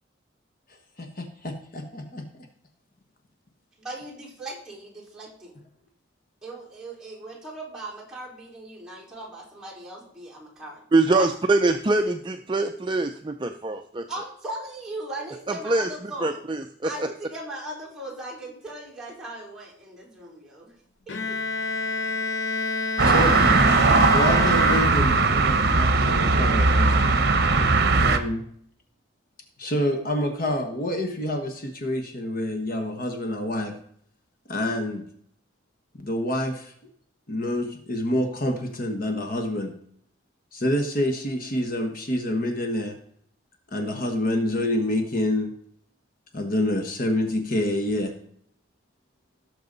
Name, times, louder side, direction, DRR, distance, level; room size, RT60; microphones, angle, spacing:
voice 1, 1.0-2.2 23.0-23.4 24.1-27.2 27.9-28.4 29.6-33.7 34.5-35.0 35.9-36.7 37.3-39.7 40.5-43.0 43.7-45.5 46.3-48.1, left 1 dB, 45° left, 5 dB, 1.3 m, -27 dB
voice 2, 3.8-5.6 6.4-10.7 11.1-11.3 14.1-16.4 16.8-20.7 21.1-21.4, right 1 dB, 5° right, -6 dB, 4.4 m, -38 dB
voice 3, 10.9-14.0 15.5-15.9 16.2-17.1, right 2 dB, 25° right, 5 dB, 0.5 m, -23 dB
Bowed string instrument, 21.1-25.5, left 3 dB, 70° left, 1.0 m, -29 dB
sound 1, 23.0-28.2, right 3 dB, 55° right, 1.0 m, -19 dB
17.0 x 6.9 x 4.0 m, 0.64 s
head